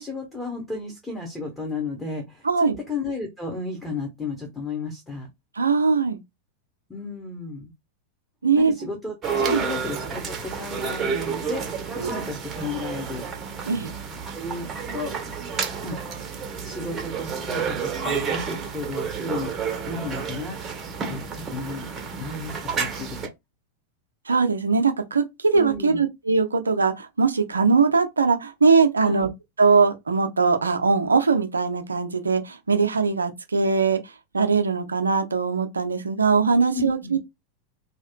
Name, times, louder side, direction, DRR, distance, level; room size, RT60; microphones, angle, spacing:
voice 1, 0.0-5.3 6.9-7.7 8.6-13.2 14.3-15.1 15.8-16.2 16.6-20.6 21.1-21.9 22.2-23.3 25.5-26.0 29.0-29.3 36.7-37.1, left 3 dB, 10° left, 0.9 m, -33 dB
voice 2, 2.4-2.8 5.6-6.2 8.4-8.7 9.4-9.6 12.0-12.1 13.7-13.9 24.3-29.3 29.6-34.0 34.3-37.2, right 4 dB, 75° right, 0.5 m, -21 dB
sound 1, 9.2-23.3, right 6 dB, 25° right, 0.7 m, -30 dB
2.8 x 2.4 x 2.2 m
figure-of-eight pair, 90°, 0 cm